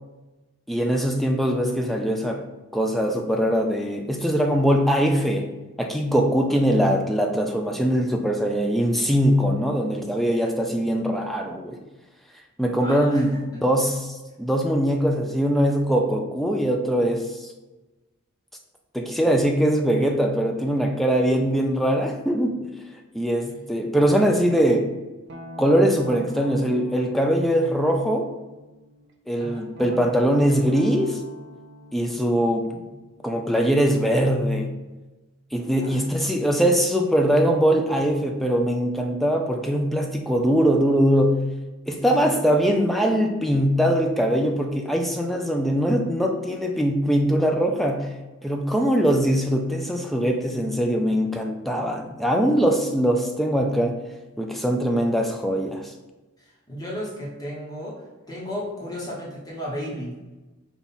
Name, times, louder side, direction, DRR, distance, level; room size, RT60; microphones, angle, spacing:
voice 1, 0.7-2.5 2.7-5.5 5.8-11.8 12.6-17.5 18.9-22.7 23.1-24.9 25.6-28.3 29.3-31.2 31.9-32.8 33.2-34.7 35.5-41.5 41.9-48.1 48.4-54.0 54.4-55.9, equal, ahead, 2 dB, 0.3 m, -22 dB
voice 2, 12.8-13.4 29.4-29.7 35.8-36.0 36.3-36.4 42.0-42.4 56.4-60.4, equal, 20° left, -5 dB, 1.0 m, -34 dB
Guitar, 25.3-29.1 29.7-34.5, equal, 55° right, 0.5 m, -42 dB
5.4 x 2.4 x 4.0 m, 1.1 s
head